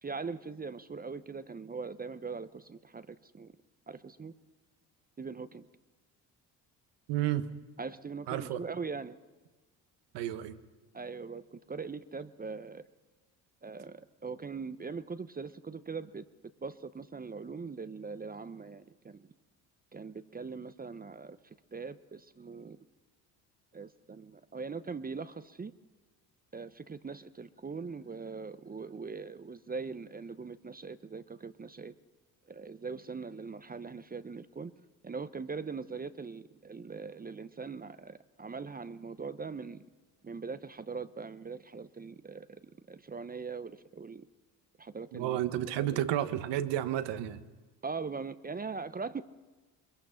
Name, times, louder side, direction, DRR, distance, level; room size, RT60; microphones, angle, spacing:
voice 1, 0.0-3.5 3.9-4.3 5.2-5.7 7.8-9.2 10.9-12.8 13.6-16.2 16.6-19.3 19.9-21.4 21.7-22.8 23.7-25.7 26.5-31.9 32.5-34.7 35.0-39.8 40.2-44.3 44.8-45.4 45.9-46.0 47.8-49.2, right 4 dB, 20° right, 13 dB, 0.7 m, -41 dB
voice 2, 7.1-7.5 8.3-8.6 10.1-10.6 45.1-47.4, right 12 dB, 75° right, 11 dB, 1.3 m, -31 dB
22.0 x 22.0 x 5.7 m, 1.3 s
supercardioid pair, 75°, 43 cm